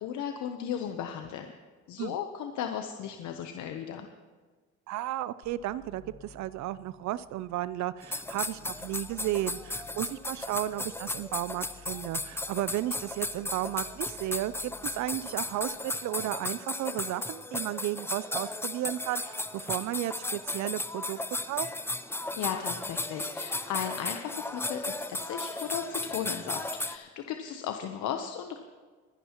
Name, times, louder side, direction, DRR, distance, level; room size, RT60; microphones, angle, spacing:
voice 1, 0.0-1.5 1.9-4.1 22.4-28.6, left 9 dB, 70° left, 6 dB, 0.9 m, -36 dB
voice 2, 4.9-21.7, right 14 dB, 65° right, 16 dB, 0.5 m, -34 dB
sound 1, 5.4-15.7, left 6 dB, 50° left, 1.8 m, -55 dB
sound 2, 8.0-27.0, left 2 dB, 10° left, 0.6 m, -35 dB
22.5 x 11.0 x 3.0 m, 1.5 s
cardioid pair, 90°, 30 cm